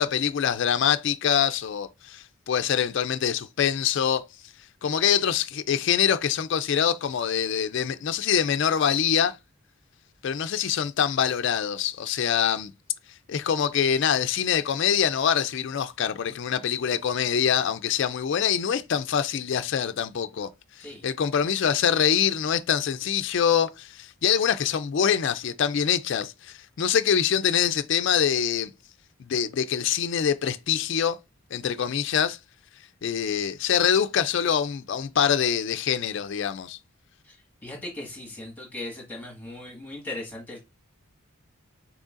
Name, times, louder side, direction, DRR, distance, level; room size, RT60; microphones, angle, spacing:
voice 1, 0.0-4.2 4.8-9.4 10.2-12.7 13.3-20.5 20.8-28.7 29.2-31.2 31.5-32.4 33.0-36.8, left 8 dB, 55° left, 0.3 m, -24 dB
voice 2, 37.6-40.6, left 2 dB, 10° left, 1.6 m, -38 dB
6.4 x 3.0 x 2.5 m
head